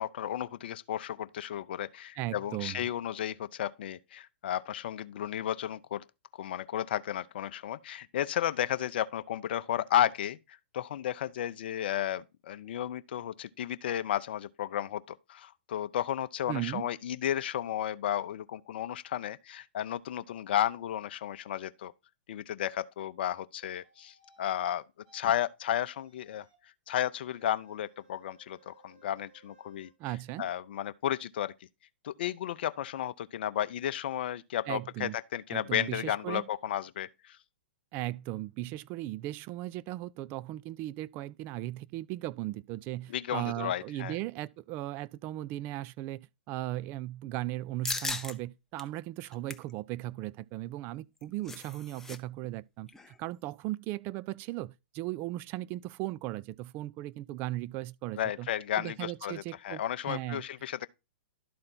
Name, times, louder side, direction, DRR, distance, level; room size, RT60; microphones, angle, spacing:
voice 1, 0.0-6.0 6.3-10.4 10.7-21.9 22.3-24.8 25.1-26.5 26.9-29.9 30.4-31.5 32.0-37.4 43.1-44.2 58.2-60.9, left 11 dB, 60° left, 0.6 m, -33 dB
voice 2, 2.2-2.9 16.5-16.9 30.0-30.5 34.7-35.1 35.5-36.4 37.9-58.5 58.8-59.8 60.1-60.4, right 16 dB, 35° right, 0.4 m, -37 dB
sound 1, 23.6-24.6 25.0-25.2 25.6-26.7 27.1-29.9, right 4 dB, 55° right, 4.1 m, -63 dB
sound 2, 47.8-48.3 48.8-48.9 49.3-49.7 51.0-52.2 52.4-52.6 52.9-53.2, left 3 dB, 5° left, 0.7 m, -37 dB
12.0 x 4.3 x 4.0 m
hypercardioid pair, 120°, 6 cm